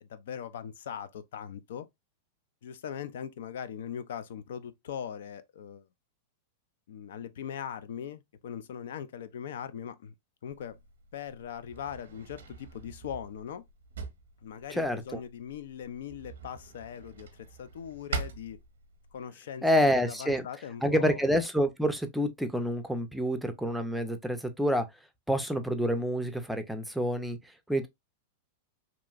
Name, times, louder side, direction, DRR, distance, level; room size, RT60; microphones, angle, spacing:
voice 1, 0.0-1.9 2.6-5.9 6.9-10.1 10.4-10.8 11.1-13.6 14.4-18.6 19.1-21.3, left 8 dB, 75° left, 0.4 m, -40 dB
Drawer open or close, 10.5-19.2, right 5 dB, 90° right, 0.7 m, -43 dB
voice 2, 14.7-15.2 19.6-20.4 20.8-24.9 25.3-27.4 27.7-27.9, equal, ahead, 0.4 m, -28 dB
2.9 x 2.5 x 2.3 m
hypercardioid pair, 135°, 0 cm